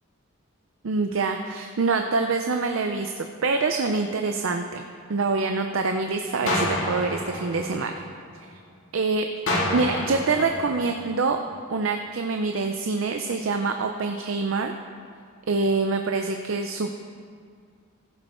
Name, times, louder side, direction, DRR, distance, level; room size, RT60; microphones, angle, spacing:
voice 1, 0.8-4.8 5.1-7.9 8.9-9.3 9.7-11.4 11.7-14.7 15.5-16.9, right 4 dB, 70° right, 5 dB, 0.5 m, -25 dB
sound 1, 6.5-8.5 9.5-11.5, left 1 dB, 75° left, 2.2 m, -29 dB
15.0 x 7.8 x 4.4 m, 2.1 s
head